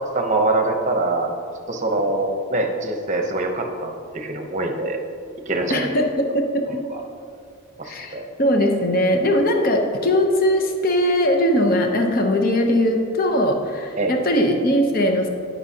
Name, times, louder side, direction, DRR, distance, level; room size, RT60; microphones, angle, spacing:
voice 1, 0.1-1.3 1.7-5.0 5.5-5.9 6.9-7.0 7.8-8.3 14.0-14.1, right 2 dB, 35° right, 4 dB, 0.8 m, -24 dB
voice 2, 5.7-6.6 7.8-15.3, equal, 40° left, 3 dB, 0.7 m, -20 dB
16.0 x 5.4 x 2.8 m, 2.4 s
head